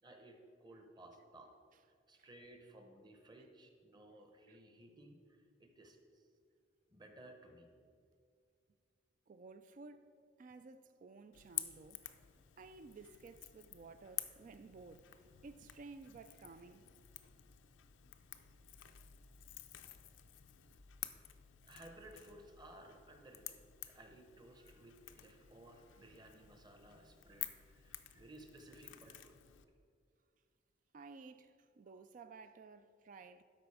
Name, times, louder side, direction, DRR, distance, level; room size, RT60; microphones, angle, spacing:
voice 1, 0.0-1.5 2.1-6.3 6.9-7.7 21.6-23.6 23.8-29.4, right 1 dB, 25° right, 0.9 m, -58 dB
voice 2, 9.3-10.1 10.4-12.0 12.6-15.1 15.4-16.8 30.9-33.4, right 4 dB, 45° right, 0.3 m, -55 dB
Crackle / Crack, 11.3-29.6, left 13 dB, 80° left, 0.5 m, -51 dB
12.5 x 5.1 x 4.9 m
head